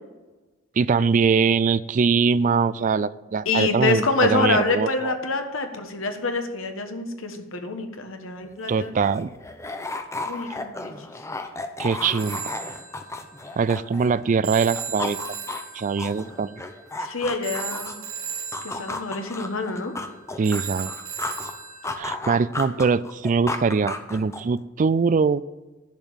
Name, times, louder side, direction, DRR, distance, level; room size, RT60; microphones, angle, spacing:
voice 1, 0.8-5.1 8.7-9.3 11.8-12.4 13.6-15.2 15.7-16.6 20.4-20.9 22.0-25.4, right 5 dB, 35° right, 18 dB, 0.3 m, -22 dB
voice 2, 3.4-8.9 10.2-10.9 17.0-17.9 18.6-19.9, left 3 dB, 70° left, 6 dB, 1.4 m, -26 dB
sound 1, 8.4-8.5 8.8-14.3 14.6-18.1 18.5-21.5 21.8-24.6, left 2 dB, 15° left, 0.7 m, -34 dB
Telephone, 12.2-22.0, right 7 dB, 75° right, 1.7 m, -37 dB
10.5 x 5.4 x 8.6 m, 1.2 s
head